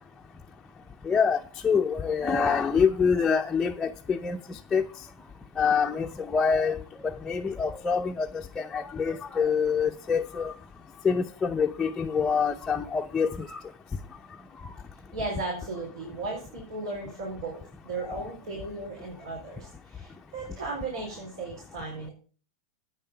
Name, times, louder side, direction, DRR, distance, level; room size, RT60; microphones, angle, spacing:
voice 1, 1.0-1.4 1.6-4.8 5.6-6.8 7.3-10.5 11.0-13.6 21.0-21.1, left 6 dB, 10° left, 0.5 m, -26 dB
voice 2, 15.1-22.1, right 3 dB, 85° right, 4.3 m, -36 dB
8.7 x 7.2 x 5.7 m
supercardioid pair, 145°, 3 cm